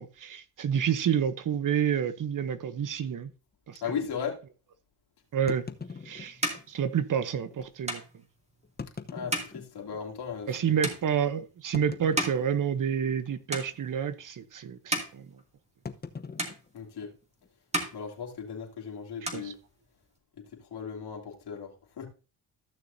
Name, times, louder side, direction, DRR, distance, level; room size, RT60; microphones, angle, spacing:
voice 1, 0.0-3.3 3.7-4.1 5.3-5.6 6.0-6.4 6.7-8.0 10.5-15.3 19.3-19.5, right 8 dB, 50° right, 0.9 m, -29 dB
sound 1, 0.7-0.9 1.7-1.8 2.1-2.2 2.8-2.9 5.5-6.7 7.5-7.6 8.6-10.1 10.6-10.7 11.7-12.8 13.1-13.5 13.7-14.0 15.8-17.5, left 5 dB, 25° left, 0.8 m, -42 dB
voice 2, 3.8-4.4 9.1-10.8 16.7-17.1 17.9-19.6 20.7-21.7 22.0-22.1, left 7 dB, 65° left, 2.7 m, -36 dB
sound 2, 5.6-13.2 13.5-14.2 14.6-16.1 16.4-17.3 17.6-18.8 19.1-20.2, right 1 dB, 15° right, 2.3 m, -37 dB
14.5 x 6.4 x 2.7 m
supercardioid pair, 70°, 42 cm